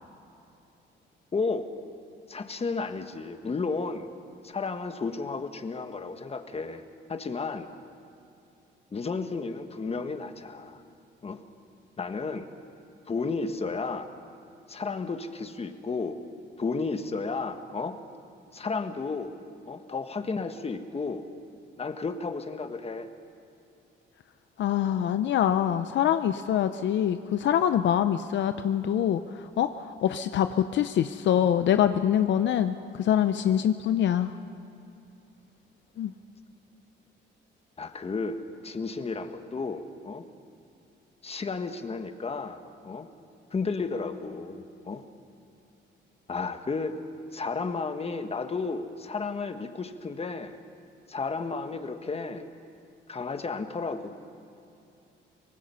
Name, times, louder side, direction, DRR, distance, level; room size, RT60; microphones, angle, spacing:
voice 1, 1.3-1.7 2.3-4.1 4.4-6.8 7.1-7.7 8.9-10.8 11.2-11.4 12.0-12.5 13.1-14.1 14.7-16.2 16.6-18.0 18.5-19.3 19.7-21.2 21.8-23.1 37.8-38.4 38.6-40.3 41.2-42.6 42.8-43.1 43.5-45.0 46.3-46.9 47.3-50.6 51.1-52.4 53.1-54.1, left 4 dB, 30° left, 8 dB, 1.5 m, -32 dB
voice 2, 24.6-29.2 29.6-34.3 36.0-36.1, left 10 dB, 70° left, 10 dB, 0.7 m, -24 dB
24.0 x 19.0 x 5.6 m, 2.7 s
cardioid pair, 90°, 20 cm